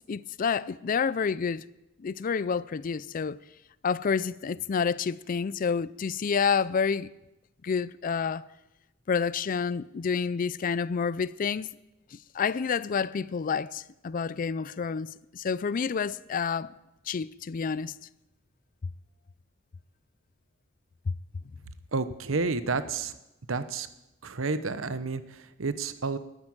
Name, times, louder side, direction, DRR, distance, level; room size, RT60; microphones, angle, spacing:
voice 1, 0.1-1.6 2.0-3.4 3.8-7.1 7.6-8.5 9.1-11.7 12.1-16.7 17.1-18.0 21.1-21.2, left 6 dB, 45° left, 0.4 m, -29 dB
voice 2, 21.9-23.1 23.5-23.9 24.2-26.2, right 4 dB, 80° right, 0.9 m, -30 dB
12.5 x 9.9 x 8.8 m
head